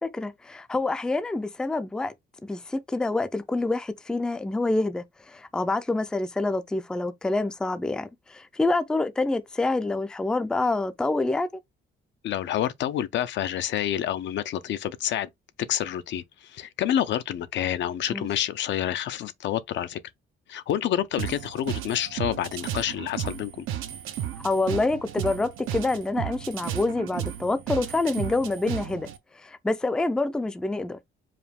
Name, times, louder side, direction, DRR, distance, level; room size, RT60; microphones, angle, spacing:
voice 1, 0.0-2.1 2.4-11.5 18.1-18.3 24.4-29.1 29.3-31.0, left 2 dB, 5° left, 0.3 m, -27 dB
voice 2, 12.2-15.3 15.6-20.0 20.5-23.7, left 11 dB, 65° left, 0.5 m, -28 dB
sound 1, 21.2-29.2, right 11 dB, 90° right, 0.7 m, -34 dB
4.9 x 2.2 x 3.4 m
cardioid pair, 145°, 20 cm